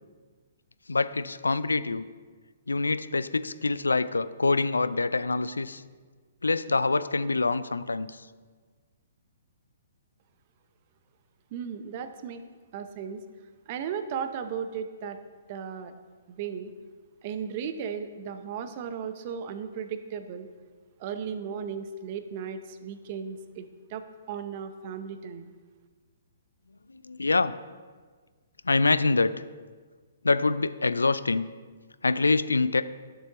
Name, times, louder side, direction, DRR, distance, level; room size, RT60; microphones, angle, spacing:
voice 1, 0.9-2.0 2.7-5.8 6.4-8.2 26.9-27.5 28.6-29.3 30.2-31.5 32.0-32.8, left 3 dB, 85° left, 15 dB, 0.3 m, -25 dB
voice 2, 11.5-12.4 12.7-13.2 13.7-15.2 15.5-15.9 16.3-16.7 17.2-20.5 21.0-24.0 24.3-25.5, right 7 dB, 40° right, 9 dB, 0.6 m, -35 dB
11.0 x 6.7 x 2.9 m, 1.5 s
figure-of-eight pair, 125°, 0 cm